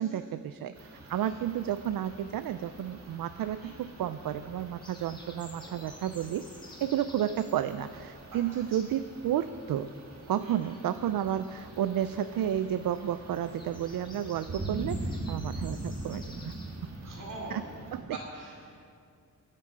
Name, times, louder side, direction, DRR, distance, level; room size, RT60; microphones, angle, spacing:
voice 1, 0.0-6.5 6.8-9.9 10.3-16.5 17.5-17.6 17.9-18.0, right 10 dB, 85° right, 11 dB, 0.5 m, -32 dB
sound 1, 0.8-18.0, right 2 dB, 50° right, 1.8 m, -43 dB
sound 2, 4.8-9.2 9.4-16.9, left 1 dB, 15° left, 1.6 m, -54 dB
voice 2, 5.6-5.9 8.3-8.6 10.4-10.7 17.0-17.6 18.0-18.9, right 2 dB, 70° right, -3 dB, 4.5 m, -45 dB
22.0 x 10.0 x 4.8 m, 2.3 s
wide cardioid pair, 130°, 33 cm